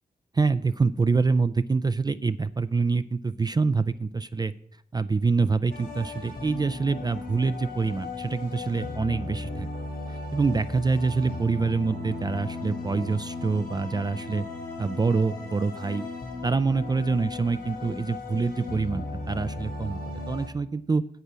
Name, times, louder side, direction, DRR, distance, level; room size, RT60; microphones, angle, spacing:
voice 1, 0.3-4.5 4.9-9.7 10.1-14.5 14.8-16.1 16.4-21.0, right 4 dB, 25° right, 14 dB, 0.3 m, -26 dB
sound 1, 5.7-20.5, left 2 dB, 80° left, 3.9 m, -36 dB
8.5 x 8.1 x 6.2 m, 0.68 s
wide cardioid pair, 140°, 16 cm